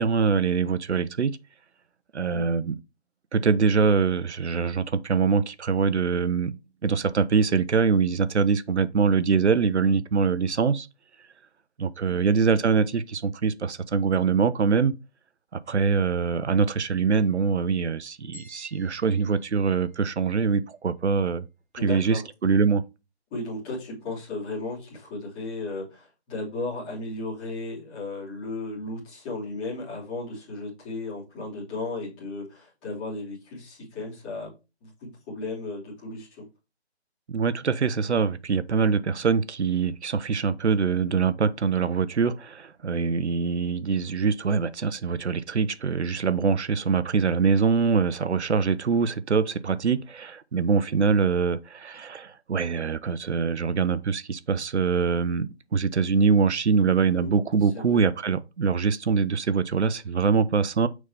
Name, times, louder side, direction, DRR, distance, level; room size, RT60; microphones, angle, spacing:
voice 1, 0.0-1.3 2.1-2.7 3.3-6.6 6.8-10.9 11.8-14.9 15.5-21.4 21.8-22.8 37.3-60.9, right 5 dB, 90° right, 0.8 m, -24 dB
sound 1, 18.3-20.5, left 1 dB, 15° right, 3.2 m, -53 dB
voice 2, 21.8-22.2 23.3-34.5 34.8-36.5 57.1-57.3 57.6-58.1, left 2 dB, 15° left, 3.4 m, -35 dB
6.3 x 5.5 x 3.4 m
hypercardioid pair, 170°, 33 cm